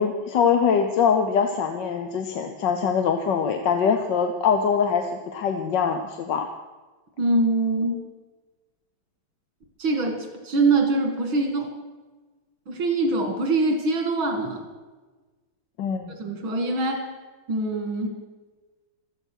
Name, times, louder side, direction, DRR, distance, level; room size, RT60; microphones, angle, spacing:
voice 1, 0.0-6.5 15.8-16.1, left 6 dB, 65° left, 6 dB, 1.5 m, -23 dB
voice 2, 7.2-8.0 9.8-11.7 12.7-14.6 16.2-17.1 17.5-18.1, right 2 dB, 85° right, 3 dB, 3.1 m, -23 dB
16.0 x 13.5 x 6.3 m, 1.3 s
omnidirectional pair, 2.1 m